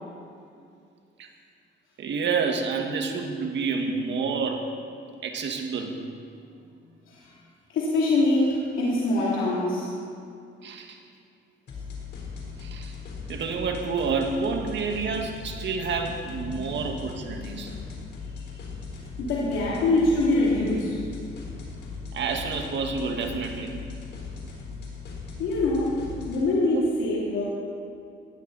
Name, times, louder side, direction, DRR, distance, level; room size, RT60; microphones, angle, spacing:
voice 1, 2.0-4.7 5.2-6.0 10.6-11.0 12.6-12.9 13.3-17.7 22.1-23.7 26.7-26.9, right 5 dB, 65° right, 3 dB, 1.8 m, -29 dB
voice 2, 7.7-9.9 16.5-16.6 17.4-17.5 19.2-21.0 25.4-26.0 26.3-27.5, left 2 dB, 80° left, -6 dB, 2.9 m, -24 dB
sound 1, 11.7-26.4, left 4 dB, 60° left, 4.1 m, -39 dB
18.5 x 13.0 x 4.1 m, 2.4 s
cardioid pair, 90°, 20 cm